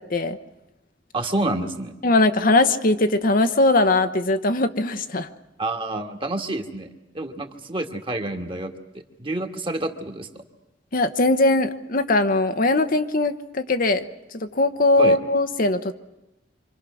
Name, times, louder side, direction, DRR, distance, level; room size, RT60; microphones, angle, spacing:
voice 1, 1.1-1.9 5.6-10.3 15.0-15.2, right 2 dB, 30° right, 5 dB, 1.9 m, -28 dB
voice 2, 2.0-5.3 10.9-14.0 14.3-15.9, left 2 dB, 50° left, 8 dB, 1.0 m, -20 dB
27.0 x 25.0 x 6.3 m, 0.94 s
head